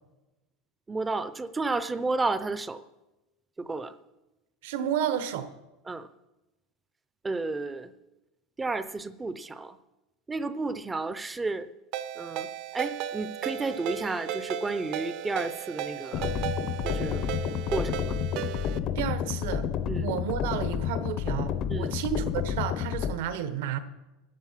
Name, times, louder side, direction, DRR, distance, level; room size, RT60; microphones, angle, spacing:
voice 1, 0.9-2.8 3.6-3.9 5.9-6.1 7.2-7.9 8.6-9.8 10.3-11.7 12.2-16.3 16.8-17.3 17.7-18.2 19.9-20.1 21.7-22.0, right 3 dB, 10° right, 14 dB, 0.5 m, -32 dB
voice 2, 4.6-5.5 18.9-19.7 20.0-23.8, right 9 dB, 70° right, 12 dB, 1.1 m, -31 dB
Ringtone, 11.9-18.8, right 10 dB, 50° right, 0.6 m, -35 dB
sound 1, 16.1-23.1, left 8 dB, 35° left, 0.6 m, -30 dB
13.5 x 10.0 x 5.7 m, 1.0 s
supercardioid pair, 170°, 0 cm